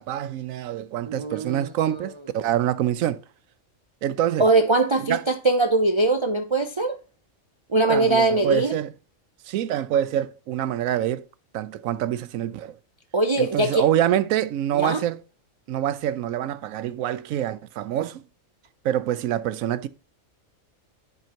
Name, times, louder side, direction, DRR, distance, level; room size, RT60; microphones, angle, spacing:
voice 1, 0.0-3.2 4.0-4.5 5.0-5.2 7.9-8.9 9.5-11.2 11.5-12.8 13.4-15.2 15.7-18.2 18.8-19.9, right 11 dB, 85° right, 1.0 m, -26 dB
voice 2, 1.1-1.7 4.4-7.0 7.7-8.8 13.1-13.8 14.7-15.0, right 2 dB, 50° right, 0.3 m, -21 dB
10.5 x 5.3 x 2.9 m
omnidirectional pair, 1.4 m